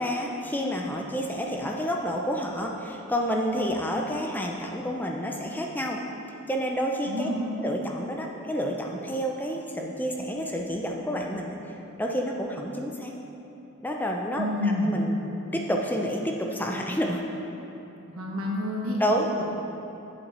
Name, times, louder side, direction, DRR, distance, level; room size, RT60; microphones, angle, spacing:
voice 1, 0.0-6.0 6.5-7.3 7.6-13.1 13.8-15.2 15.5-17.2 19.0-19.4, equal, 10° left, 0 dB, 0.5 m, -29 dB
voice 2, 7.1-7.6 14.4-15.0 18.1-19.0, left 1 dB, 80° right, -2 dB, 1.4 m, -28 dB
7.6 x 7.6 x 4.3 m, 2.9 s
head